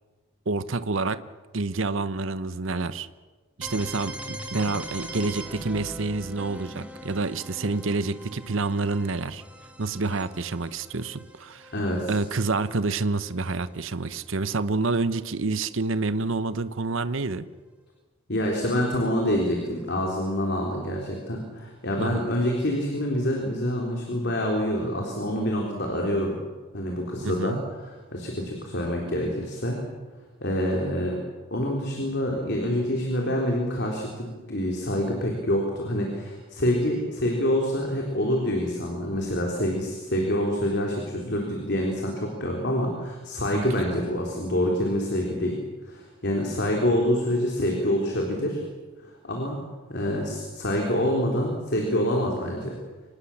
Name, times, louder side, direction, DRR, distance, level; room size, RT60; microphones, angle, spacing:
voice 1, 0.5-1.2 1.5-3.1 3.6-9.4 9.8-11.7 12.1-17.5 22.0-22.2 27.2-27.6 43.5-43.9, right 3 dB, 60° right, 14 dB, 0.9 m, -28 dB
sound 1, 3.6-13.3, right 1 dB, 5° right, 2.0 m, -41 dB
voice 2, 11.7-12.2 18.3-26.4 26.7-29.8 30.4-31.2 31.5-45.6 45.8-48.6 49.0-49.6 49.9-52.8, equal, 50° left, 0 dB, 3.8 m, -26 dB
25.5 x 20.0 x 7.2 m, 1.3 s
head